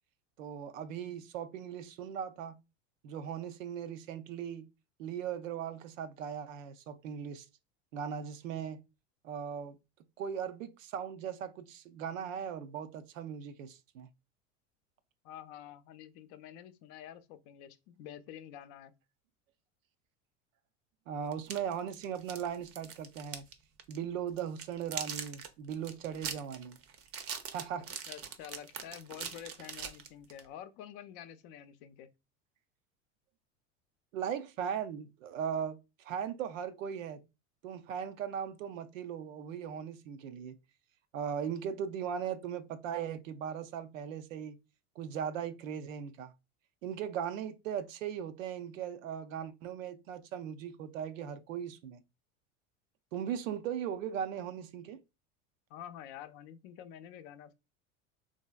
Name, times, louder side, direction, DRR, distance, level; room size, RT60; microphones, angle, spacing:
voice 1, 0.4-2.6 3.0-4.7 5.0-7.5 7.9-8.8 9.2-9.8 10.2-14.1 21.1-23.5 23.9-26.8 27.5-27.9 34.1-37.2 37.6-40.6 41.1-44.6 45.0-46.3 46.8-52.0 53.1-55.0, right 8 dB, 90° right, 0.5 m, -38 dB
voice 2, 15.2-18.9 28.1-32.1 55.7-57.5, left 10 dB, 60° left, 0.5 m, -48 dB
sound 1, 21.3-23.5 23.8-24.0 24.4-30.5, right 7 dB, 35° right, 0.5 m, -42 dB
3.2 x 2.6 x 2.2 m
hypercardioid pair, 95°, 38 cm